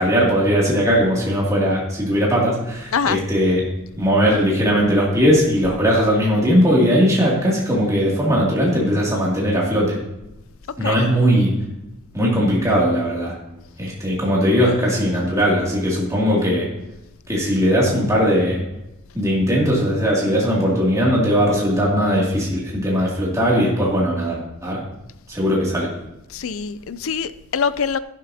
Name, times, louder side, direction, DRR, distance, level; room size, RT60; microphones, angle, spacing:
voice 1, 0.0-3.6 4.0-10.0 10.8-11.5 12.1-13.3 13.8-16.7 17.3-18.6 19.1-24.8 25.3-25.9, equal, 15° right, -5 dB, 2.6 m, -19 dB
voice 2, 2.9-3.2 10.8-11.0 26.3-28.0, left 6 dB, 65° left, 15 dB, 0.5 m, -24 dB
12.0 x 11.5 x 2.8 m, 0.91 s
head